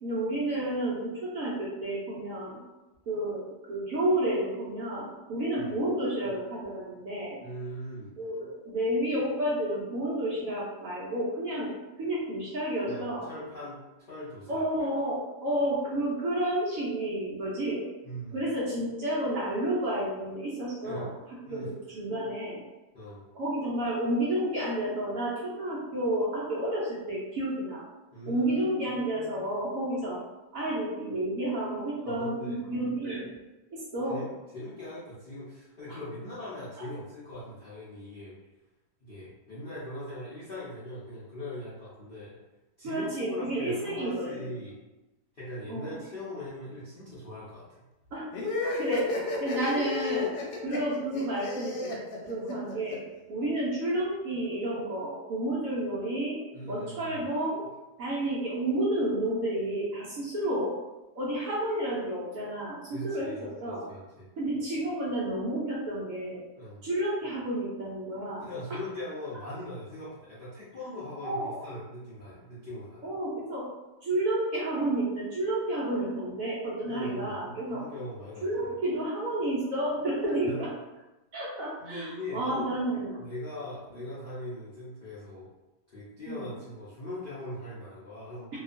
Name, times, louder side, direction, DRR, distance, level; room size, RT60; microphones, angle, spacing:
voice 1, 0.0-2.6 3.1-7.4 8.2-11.7 12.0-13.3 14.5-17.8 18.3-21.1 21.5-22.6 23.3-27.8 28.3-30.2 30.5-33.3 33.7-34.2 35.9-36.0 42.8-44.4 45.7-46.0 48.1-48.3 48.8-49.1 49.4-50.3 50.6-51.9 52.3-53.0 53.3-56.4 56.6-57.6 58.0-60.7 61.2-63.9 64.4-66.4 66.8-68.5 71.2-71.6 73.0-73.7 74.0-77.9 78.4-80.7 81.3-83.2 86.3-86.4, right 1 dB, 65° right, -6 dB, 0.9 m, -31 dB
voice 2, 7.4-8.1 12.8-14.6 18.0-18.4 20.8-21.1 21.5-21.7 22.9-23.2 28.1-28.7 32.0-32.6 34.1-38.3 39.0-42.3 42.8-44.8 45.3-47.8 56.5-57.2 62.9-64.3 66.6-66.8 68.4-73.1 76.9-77.4 77.7-78.5 80.3-80.6 81.8-82.7 83.2-85.5 85.9-88.5, left 1 dB, 60° left, -11 dB, 0.5 m, -40 dB
sound 1, 48.3-53.0, left 3 dB, 85° left, 1.3 m, -32 dB
2.8 x 2.3 x 2.5 m, 1.1 s
omnidirectional pair, 1.8 m